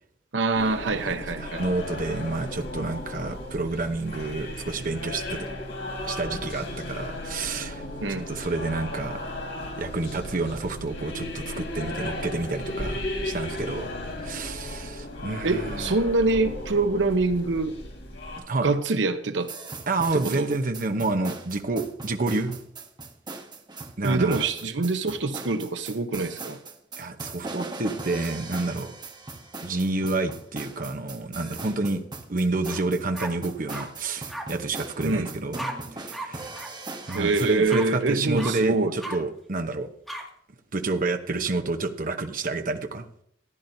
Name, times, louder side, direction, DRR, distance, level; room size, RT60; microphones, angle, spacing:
voice 1, 0.3-1.6 8.0-8.3 15.4-17.8 18.6-19.5 20.1-20.5 24.0-26.6 35.0-35.3 37.1-38.9, right 3 dB, 80° right, 9 dB, 0.8 m, -25 dB
sound 1, 0.5-18.4, left 1 dB, 70° left, 3.3 m, -35 dB
voice 2, 0.9-5.5 6.0-9.2 9.8-13.9 14.2-15.9 18.5-18.7 19.9-22.6 24.0-24.5 27.0-28.9 29.6-32.0 32.3-35.6 36.0-36.5 37.1-39.9 40.7-43.1, right 3 dB, 50° right, 6 dB, 0.9 m, -29 dB
sound 2, 19.4-37.6, right 3 dB, 25° right, 1.0 m, -39 dB
sound 3, 32.7-32.8 33.1-33.9 34.3-34.4 35.6-35.7 36.1-36.3 36.5-36.7 37.1-37.2 37.7-37.9 38.4-38.5 39.0-39.2 40.1-40.2, right 1 dB, ahead, 2.0 m, -35 dB
15.0 x 10.5 x 2.7 m, 0.69 s
head